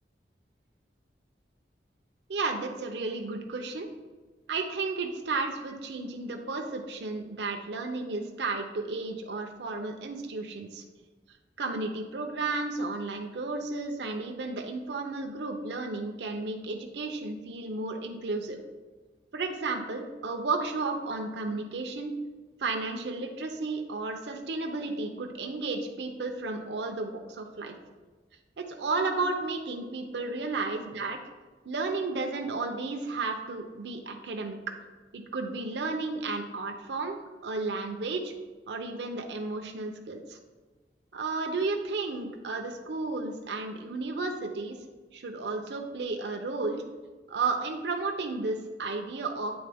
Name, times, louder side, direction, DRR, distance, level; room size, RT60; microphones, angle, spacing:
voice 1, 2.3-3.9 4.5-10.8 11.6-18.6 19.3-22.1 22.6-27.7 28.6-31.2 31.7-34.6 35.1-37.2 37.4-38.3 38.7-40.4 41.1-44.8 45.1-46.8 47.3-49.5, right 3 dB, 70° right, 4 dB, 0.6 m, -33 dB
8.8 x 3.6 x 3.5 m, 1.3 s
head